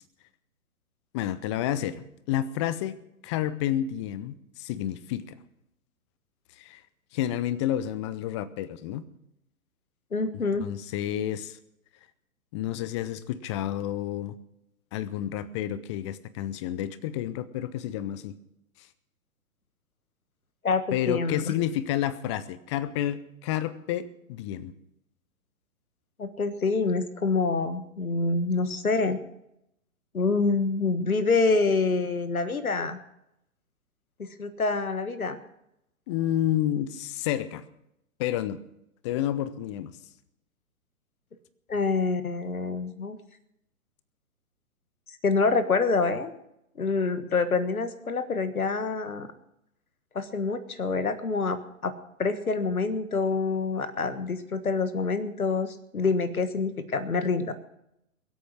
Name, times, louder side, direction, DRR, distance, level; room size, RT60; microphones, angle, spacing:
voice 1, 1.1-3.0 3.2-5.4 6.6-6.8 7.1-9.0 10.6-11.6 12.5-14.3 14.9-18.3 20.9-24.7 36.1-37.6 38.2-38.6 39.0-39.9, left 12 dB, 20° left, 17 dB, 0.6 m, -30 dB
voice 2, 10.1-10.7 20.6-21.5 26.2-29.2 30.1-33.0 34.2-35.4 41.7-43.2 45.2-46.3 46.8-49.3 50.1-51.9 52.2-57.5, left 4 dB, 75° left, 11 dB, 1.5 m, -26 dB
22.0 x 8.4 x 6.1 m, 0.82 s
figure-of-eight pair, 120°, 43 cm